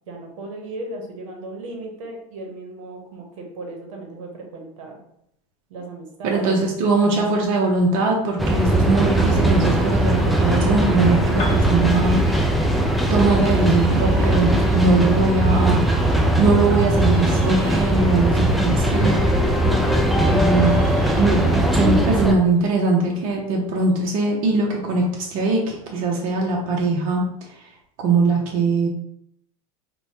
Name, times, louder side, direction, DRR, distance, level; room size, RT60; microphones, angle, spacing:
voice 1, 0.1-5.0 5.7-7.3 8.7-8.8, right 2 dB, 80° right, 2 dB, 0.9 m, -37 dB
voice 2, 6.2-12.2 13.1-15.9 16.4-19.2 20.3-20.8 21.2-21.4 21.7-27.2 28.0-28.9, right 3 dB, 55° right, -1 dB, 0.7 m, -21 dB
sound 1, 8.4-22.3, right 1 dB, ahead, 0.3 m, -19 dB
Musical instrument, 8.5-23.9, right 2 dB, 35° right, 1.0 m, -35 dB
Piano, 11.3-19.1, left 1 dB, 35° left, 0.8 m, -41 dB
4.3 x 2.2 x 2.8 m, 0.76 s
supercardioid pair, 110°, 17 cm